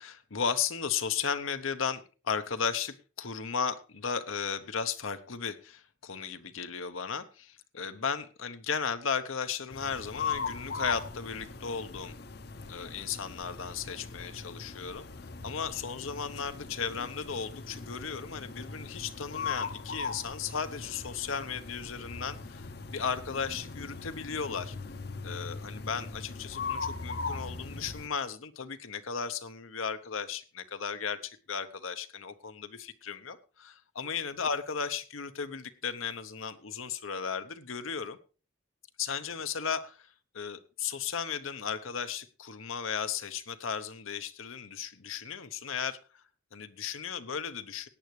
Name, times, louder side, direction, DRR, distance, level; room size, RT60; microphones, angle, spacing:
voice 1, 0.0-12.1 12.7-15.1 15.4-22.7 22.9-24.8 25.2-38.2 39.0-46.0 46.5-47.9, left 6 dB, 80° left, 9 dB, 0.9 m, -35 dB
sound 1, 9.7-28.1, left 4 dB, 50° left, 0.7 m, -40 dB
17.5 x 9.4 x 3.2 m, 0.34 s
head